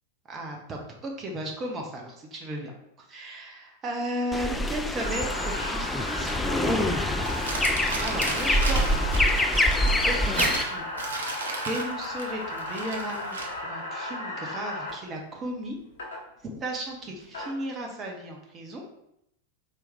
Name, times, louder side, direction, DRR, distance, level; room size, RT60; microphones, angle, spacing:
voice 1, 0.3-7.2 7.7-9.1 10.0-10.8 11.6-15.8 16.4-18.8, right 1 dB, 25° right, 0 dB, 0.9 m, -35 dB
sound 1, 4.3-10.6, left 1 dB, 10° left, 0.3 m, -25 dB
sound 2, 5.0-14.9 16.0-16.2 17.1-17.5, left 1 dB, 60° left, 1.4 m, -35 dB
Crumpling crinkling, 7.2-13.6, right 3 dB, 65° right, 0.7 m, -34 dB
4.6 x 3.1 x 3.5 m, 0.78 s
figure-of-eight pair, 90°, 0 cm